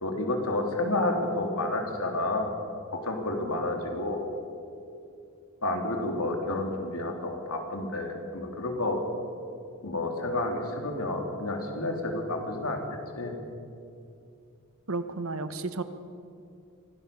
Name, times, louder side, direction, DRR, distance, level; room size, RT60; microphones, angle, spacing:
voice 1, 0.0-2.5 2.9-4.2 5.6-9.0 9.8-12.8 13.1-13.4, left 2 dB, 80° left, 3 dB, 3.3 m, -30 dB
voice 2, 14.9-15.8, right 3 dB, 65° right, 10 dB, 1.3 m, -32 dB
24.5 x 17.0 x 7.1 m, 2.5 s
head